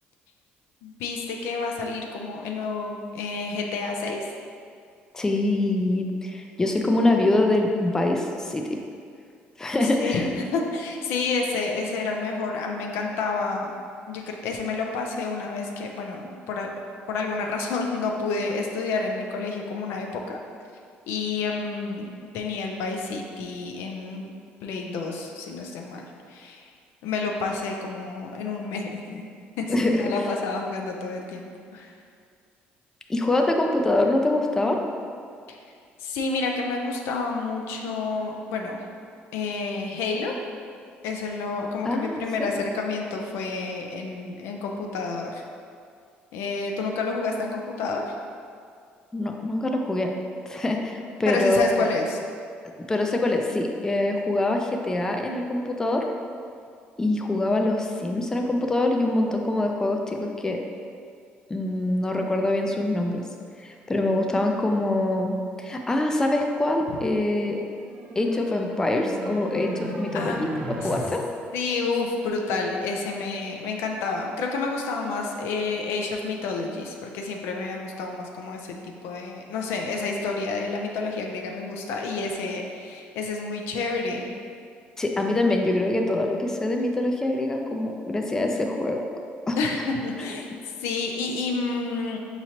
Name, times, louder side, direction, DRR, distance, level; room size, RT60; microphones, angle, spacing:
voice 1, 0.8-4.2 10.0-13.7 14.1-16.7 17.1-20.4 21.1-24.3 24.6-26.7 27.0-29.3 29.6-29.7 30.0-31.9 35.5-35.6 36.0-38.8 39.3-40.3 41.0-45.4 46.3-48.1 51.3-52.2 66.9-67.0 70.1-70.4 70.8-71.2 71.5-84.2 89.6-90.5 90.8-92.2, left 4 dB, 85° left, 2 dB, 0.4 m, -29 dB
voice 2, 5.1-8.8 9.6-10.3 29.7-30.1 33.1-34.8 41.8-42.5 49.1-50.1 50.5-51.9 52.9-56.1 57.0-60.6 61.5-63.2 63.6-67.6 68.2-71.2 85.0-89.0 89.5-89.6, left 2 dB, 15° left, 2 dB, 0.3 m, -24 dB
sound 1, 67.7-71.1, right 2 dB, 60° right, 0.8 m, -36 dB
4.9 x 2.9 x 2.8 m, 2.3 s
cardioid pair, 100°, 4 cm